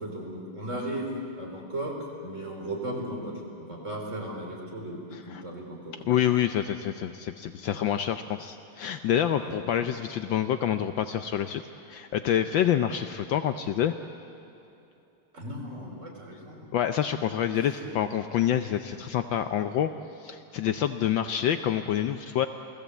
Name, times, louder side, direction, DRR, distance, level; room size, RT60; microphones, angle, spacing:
voice 1, 0.0-1.9 2.2-6.1 9.4-9.9 15.3-16.7 17.8-17.9, right 1 dB, 35° right, 0 dB, 4.3 m, -36 dB
voice 2, 5.1-5.4 5.9-13.9 16.7-19.9 20.2-22.5, left 10 dB, 70° left, 9 dB, 1.3 m, -27 dB
28.5 x 18.0 x 8.3 m, 2.9 s
omnidirectional pair, 2.4 m